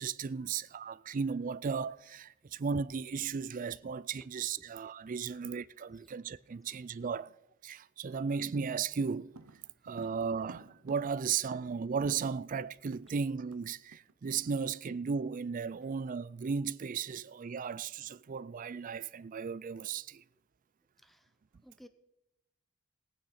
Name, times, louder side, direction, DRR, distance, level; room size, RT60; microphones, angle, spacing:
voice 1, 0.0-7.3 7.6-9.3 9.8-20.2, right 5 dB, 40° right, 0.4 m, -35 dB
voice 2, 4.2-4.3 5.3-5.5 21.0-21.3 21.6-21.9, equal, ahead, 0.6 m, -56 dB
sound 1, 9.3-12.0 12.3-12.4 12.6-13.6 13.9-14.1 14.5-14.7, right 3 dB, 90° right, 0.7 m, -52 dB
19.0 x 9.0 x 4.2 m
head